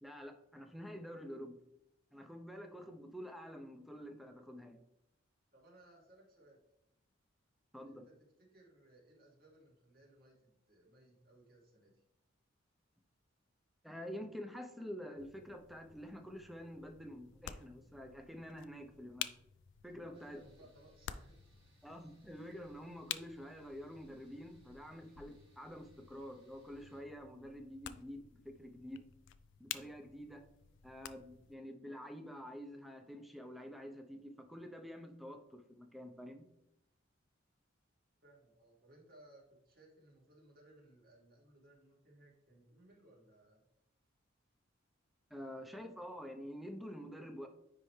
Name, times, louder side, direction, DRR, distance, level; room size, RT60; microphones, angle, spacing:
voice 1, 0.0-1.6 2.1-4.8 7.7-8.1 13.8-19.3 19.8-20.4 21.8-29.0 29.6-30.4 30.8-36.4 45.3-47.5, equal, ahead, 4 dB, 0.6 m, -48 dB
voice 2, 5.5-6.6 7.9-12.0 19.8-21.4 38.2-43.6, right 1 dB, 50° right, -3 dB, 2.2 m, -63 dB
sound 1, 15.2-31.6, left 11 dB, 65° left, 0.4 m, -51 dB
sound 2, 20.1-27.0, right 1 dB, 30° right, 1.8 m, -72 dB
9.7 x 3.4 x 3.2 m, 0.81 s
head